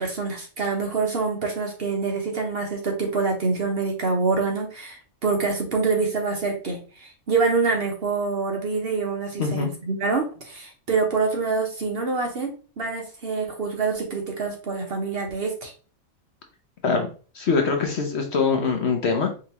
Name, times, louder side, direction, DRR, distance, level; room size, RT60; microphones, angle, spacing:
voice 1, 0.0-12.5 12.8-15.7, right 4 dB, 50° right, 2 dB, 1.0 m, -26 dB
voice 2, 9.4-9.7 16.8-17.1 17.3-19.3, left 5 dB, 55° left, 4 dB, 0.9 m, -23 dB
4.9 x 2.9 x 2.9 m, 0.38 s
omnidirectional pair, 1.5 m